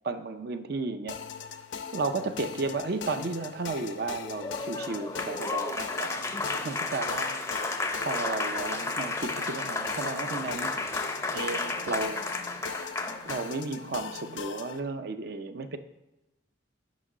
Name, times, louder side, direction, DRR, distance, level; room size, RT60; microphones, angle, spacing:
voice 1, 0.0-1.5 1.9-6.3 6.6-7.3 8.0-10.7 11.3-12.2 13.2-15.8, right 3 dB, 55° right, 9 dB, 0.4 m, -33 dB
sound 1, 1.1-14.8, left 7 dB, 70° left, 0.5 m, -40 dB
Applause, 4.3-13.5, left 3 dB, 15° left, 0.5 m, -33 dB
6.1 x 5.3 x 6.1 m, 0.96 s
head